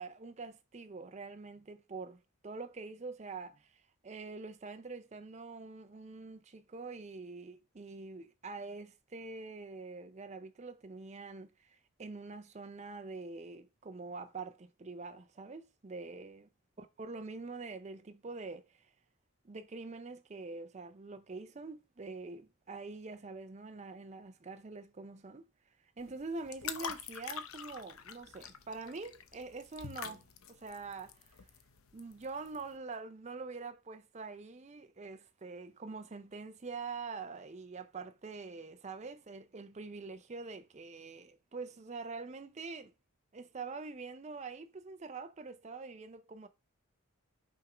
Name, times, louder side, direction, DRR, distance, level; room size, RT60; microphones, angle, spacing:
voice 1, 0.0-16.5 16.8-18.9 19.4-25.5 26.0-31.5 31.9-42.9 43.3-46.5, right 4 dB, 30° right, 0.5 m, -45 dB
sound 1, 26.0-32.7, left 7 dB, 80° left, 0.7 m, -46 dB
5.8 x 3.5 x 4.9 m
head